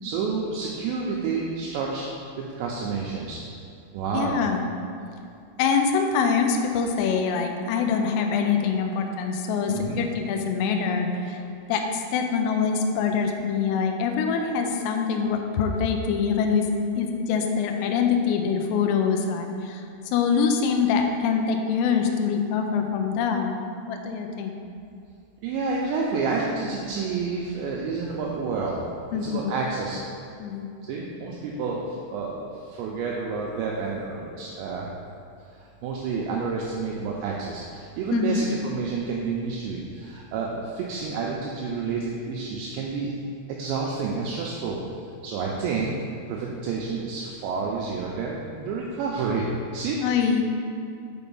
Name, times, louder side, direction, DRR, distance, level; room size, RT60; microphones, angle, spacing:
voice 1, 0.0-2.1 2.6-3.4 3.9-4.4 9.7-10.0 25.4-28.8 29.2-30.0 30.9-34.9 35.6-43.1 43.6-45.9 46.3-49.5 49.7-50.0, right 4 dB, 85° right, -3 dB, 2.5 m, -29 dB
voice 2, 4.1-4.7 5.6-11.4 11.7-16.6 17.0-19.8 20.1-23.6 23.9-24.6 29.1-29.6 30.4-30.7 38.1-38.5 50.0-50.4, left 6 dB, 85° left, 3 dB, 2.5 m, -24 dB
6.8 x 5.2 x 5.4 m, 2.5 s
omnidirectional pair, 5.7 m